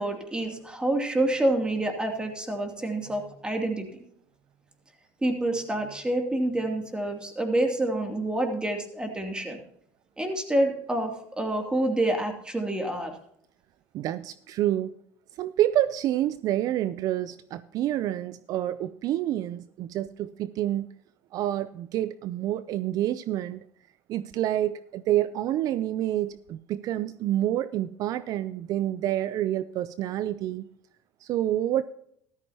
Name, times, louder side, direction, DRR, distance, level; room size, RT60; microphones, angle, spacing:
voice 1, 0.0-3.9 5.2-9.6 10.2-13.1, right 1 dB, 10° right, 4 dB, 2.6 m, -27 dB
voice 2, 13.9-14.9 15.4-20.9 21.3-23.6 24.1-30.6 31.2-31.8, right 12 dB, 60° right, 15 dB, 0.4 m, -28 dB
14.0 x 13.0 x 2.8 m, 0.69 s
supercardioid pair, 90°, 7 cm